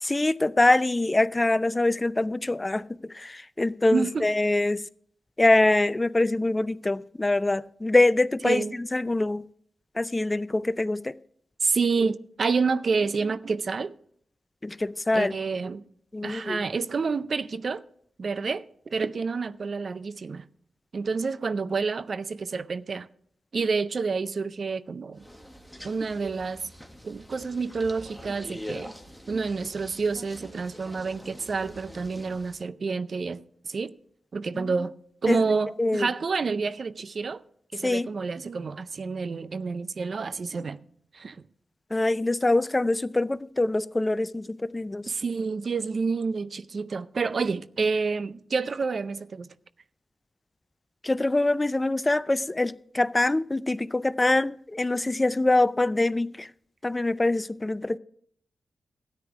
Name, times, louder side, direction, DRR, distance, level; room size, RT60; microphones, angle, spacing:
voice 1, 0.0-4.8 5.4-9.4 10.0-11.2 14.6-15.3 16.1-16.6 34.5-34.7 35.3-35.4 35.8-36.1 37.8-38.1 41.9-45.1 51.0-56.5 56.8-58.0, left 2 dB, 25° left, 0.5 m, -24 dB
voice 2, 3.9-4.3 8.4-8.7 11.6-13.9 15.1-15.8 16.2-17.8 18.2-20.4 20.9-23.1 23.5-25.2 25.8-26.7 27.0-28.9 29.3-33.9 34.3-35.0 35.2-37.4 37.7-40.8 41.1-41.4 45.1-49.5, right 4 dB, 60° right, 0.5 m, -28 dB
sound 1, 25.2-32.6, equal, 5° right, 1.8 m, -44 dB
13.0 x 9.7 x 4.8 m
supercardioid pair, 40°, 0 cm